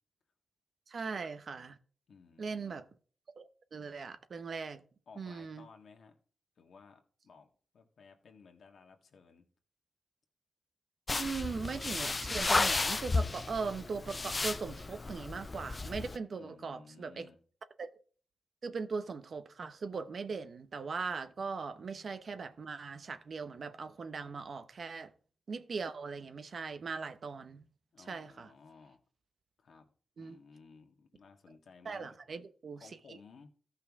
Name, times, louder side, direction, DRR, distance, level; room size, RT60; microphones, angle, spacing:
voice 1, 0.9-1.8 2.4-2.8 3.4-4.8 5.2-5.7 11.1-17.3 17.8-17.9 18.6-25.1 25.5-27.6 28.1-28.5 30.2-30.4 31.8-32.9, right 5 dB, 60° right, 0.9 m, -39 dB
voice 2, 2.1-2.8 5.1-6.2 6.6-7.5 7.7-9.5 16.4-17.4 27.9-29.0 29.6-32.2 32.8-33.5, left 5 dB, 75° left, 1.6 m, -57 dB
sound 1, 11.1-16.2, left 3 dB, 35° left, 0.4 m, -33 dB
14.0 x 5.7 x 3.6 m
cardioid pair, 65°, 0 cm